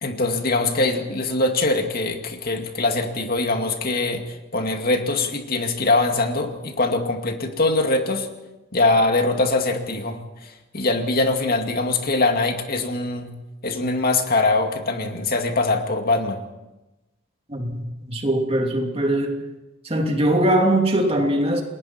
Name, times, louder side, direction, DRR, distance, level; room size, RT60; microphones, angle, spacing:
voice 1, 0.0-4.2 4.5-8.3 8.7-13.3 13.6-16.4, left 2 dB, 50° left, 4 dB, 2.3 m, -22 dB
voice 2, 17.5-19.4 19.8-21.6, right 1 dB, 30° right, 2 dB, 3.0 m, -21 dB
29.0 x 21.0 x 4.5 m, 1.0 s
head